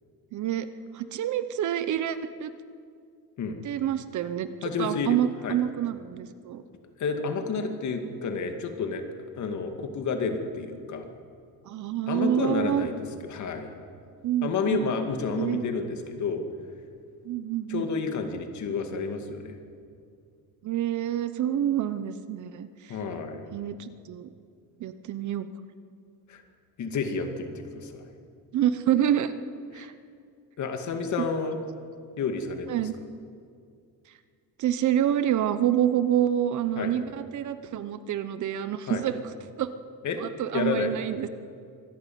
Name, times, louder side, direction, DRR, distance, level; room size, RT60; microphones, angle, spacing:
voice 1, 0.3-0.7 0.9-2.5 3.6-4.5 4.8-6.6 11.7-12.9 14.2-14.9 15.4-15.6 17.2-17.9 20.6-23.0 23.5-24.3 24.8-25.5 28.5-29.3 29.7-29.9 32.7-33.0 34.6-39.2 39.6-39.7 40.2-41.3, right 11 dB, 45° right, 12 dB, 0.9 m, -27 dB
voice 2, 4.6-5.6 7.0-9.0 9.3-11.1 12.1-13.7 14.4-16.4 17.7-19.6 22.9-23.5 26.3-26.4 26.8-28.1 29.7-29.9 30.6-31.6 32.2-32.8 36.8-36.9 38.9-39.0 40.0-40.2 40.5-40.9, left 4 dB, 45° left, 5 dB, 2.3 m, -30 dB
25.0 x 12.0 x 9.4 m, 2.3 s
cardioid pair, 155°, 40 cm